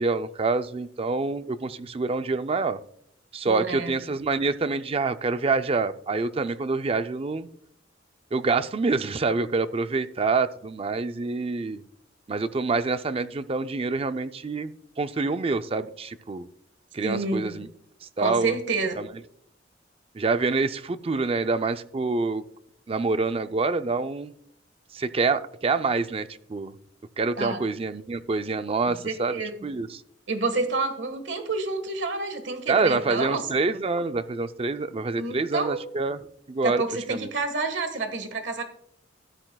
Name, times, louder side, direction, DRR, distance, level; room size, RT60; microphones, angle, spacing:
voice 1, 0.0-2.8 3.3-7.5 8.3-11.8 12.3-16.5 16.9-17.7 18.2-18.6 19.0-19.1 20.1-22.4 22.9-24.3 24.9-26.7 27.2-29.9 32.7-36.2 36.5-36.8 37.1-37.3, right 3 dB, 30° right, 11 dB, 0.4 m, -26 dB
voice 2, 3.4-4.0 17.0-17.6 18.2-18.9 27.4-27.6 28.9-29.7 30.3-33.5 35.2-35.8 36.6-38.6, right 3 dB, 70° right, 7 dB, 1.5 m, -29 dB
13.0 x 9.9 x 2.3 m, 0.69 s
head